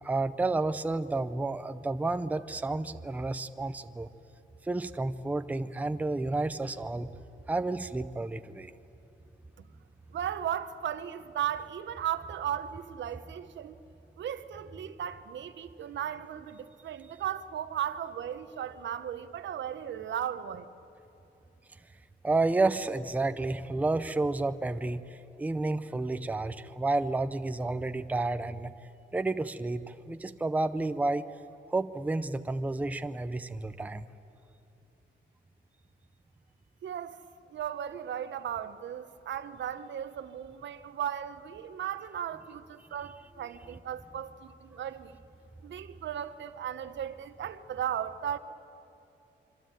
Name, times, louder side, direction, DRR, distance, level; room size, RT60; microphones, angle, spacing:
voice 1, 0.0-4.1 4.6-7.1 7.5-8.7 22.2-25.0 25.4-28.7 29.1-31.3 31.7-34.1, right 2 dB, 10° right, 0.6 m, -30 dB
voice 2, 10.1-13.8 14.2-20.7 36.8-37.2 37.5-45.2 45.6-48.4, right 10 dB, 80° right, 1.2 m, -36 dB
25.5 x 25.0 x 9.2 m
wide cardioid pair, 180°, 19 cm